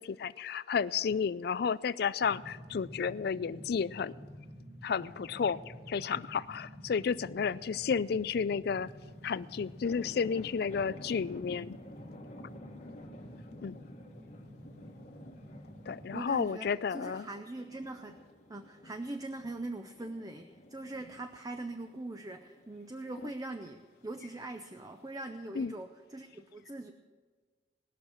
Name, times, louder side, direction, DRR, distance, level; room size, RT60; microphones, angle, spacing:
voice 1, 0.0-4.1 4.8-8.9 9.2-11.8 13.6-13.8 15.9-17.3 23.2-23.3 24.2-24.3 25.5-25.7, left 6 dB, 60° left, 18 dB, 0.4 m, -32 dB
sound 1, 2.2-16.2, equal, 80° right, 3.4 m, -50 dB
sound 2, 8.9-25.2, left 1 dB, 40° left, 1.1 m, -54 dB
voice 2, 16.1-18.2 18.5-26.9, right 2 dB, 20° right, 6 dB, 0.6 m, -42 dB
19.5 x 6.6 x 7.1 m, 1.5 s
head